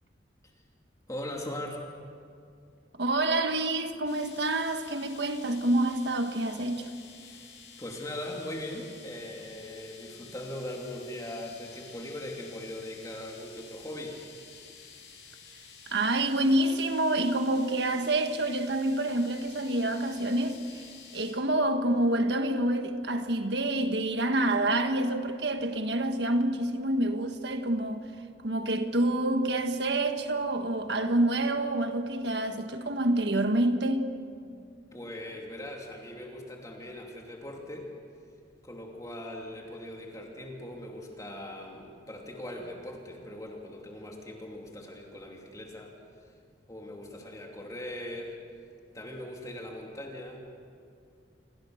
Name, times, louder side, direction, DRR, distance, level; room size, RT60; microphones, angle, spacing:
voice 1, 1.1-1.8 7.2-14.2 34.9-37.9 38.6-45.9 46.7-48.4 48.9-50.4, left 1 dB, 20° left, 2.8 m, -40 dB
voice 2, 3.0-6.9 15.9-20.9 21.1-28.0 28.4-34.1, right 1 dB, 65° right, 1.6 m, -27 dB
sound 1, 4.1-21.3, left 6 dB, 65° left, 7.5 m, -51 dB
28.5 x 23.0 x 6.5 m
head